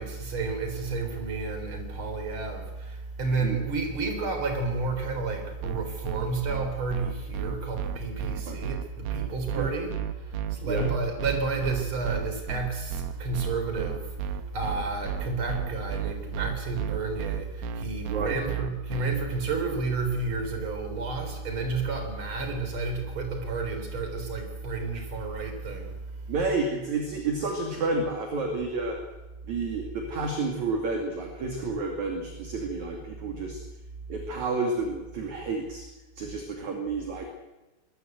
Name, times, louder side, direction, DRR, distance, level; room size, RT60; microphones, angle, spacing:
voice 1, 0.0-26.0, right 3 dB, 25° right, 5 dB, 3.9 m, -31 dB
sound 1, 5.6-19.1, right 10 dB, 70° right, 2.8 m, -32 dB
voice 2, 10.7-11.0 18.1-18.4 26.3-29.0 29.5-33.6 34.1-35.9 36.2-37.3, right 3 dB, 45° right, 3 dB, 2.8 m, -30 dB
22.0 x 20.5 x 8.0 m, 1.1 s
omnidirectional pair, 5.9 m